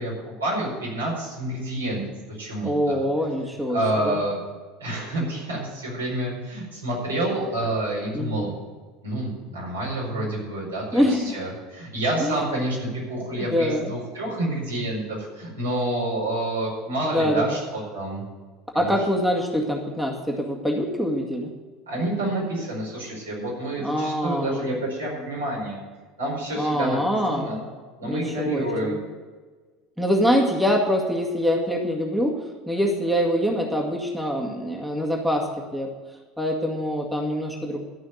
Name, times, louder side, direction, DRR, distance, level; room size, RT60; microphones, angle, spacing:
voice 1, 0.0-2.0 2.4-3.0 3.7-4.4 4.8-8.5 9.0-18.2 18.7-18.8 21.9-25.8 26.2-27.6 28.0-29.0, right 1 dB, 80° right, -4 dB, 4.8 m, -28 dB
voice 2, 2.6-4.2 8.1-8.5 10.9-11.4 12.2-12.3 13.4-13.9 17.0-17.5 18.7-21.5 23.8-24.7 26.6-27.5 28.0-29.0 30.0-32.4 32.7-35.9 36.4-37.8, equal, 5° right, 0 dB, 2.0 m, -24 dB
13.0 x 5.7 x 9.2 m, 1.4 s
figure-of-eight pair, 70°, 0 cm